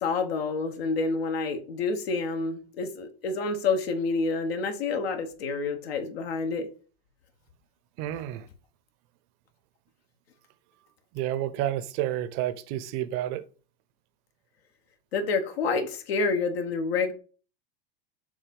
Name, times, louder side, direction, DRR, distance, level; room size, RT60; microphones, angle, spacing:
voice 1, 0.0-6.7 15.1-17.1, left 4 dB, 80° left, 1.2 m, -28 dB
voice 2, 8.0-8.5 11.1-13.5, right 12 dB, 45° right, 0.7 m, -30 dB
7.0 x 2.7 x 5.2 m
hypercardioid pair, 120°, 30 cm